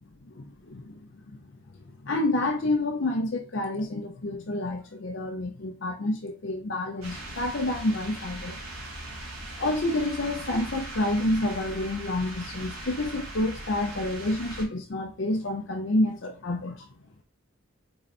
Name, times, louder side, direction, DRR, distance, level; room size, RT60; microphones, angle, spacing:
voice 1, 0.2-1.0 2.0-8.6 9.6-16.9, left 1 dB, 55° left, 0.6 m, -29 dB
sound 1, 7.0-14.6, right 1 dB, 85° right, 1.8 m, -39 dB
4.2 x 3.9 x 3.2 m
head